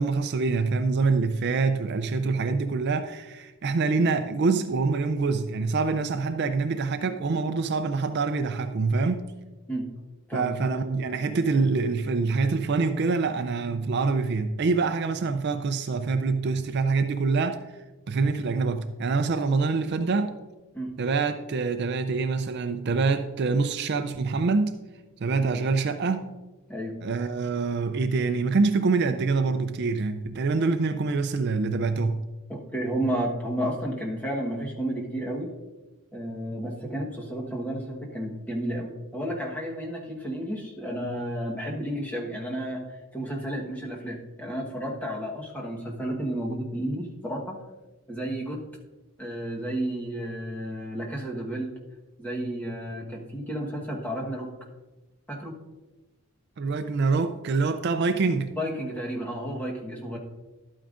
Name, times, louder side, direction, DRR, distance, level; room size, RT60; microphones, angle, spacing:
voice 1, 0.0-9.3 10.3-17.6 18.1-20.3 21.0-24.7 25.2-26.3 27.0-32.2 56.6-58.5, right 4 dB, 50° right, 0.4 m, -25 dB
voice 2, 32.5-35.5 36.1-47.6 48.1-48.6 49.2-51.7 52.2-54.5 55.3-55.5 58.6-60.2, right 1 dB, 5° left, 1.2 m, -32 dB
12.0 x 8.8 x 2.5 m
head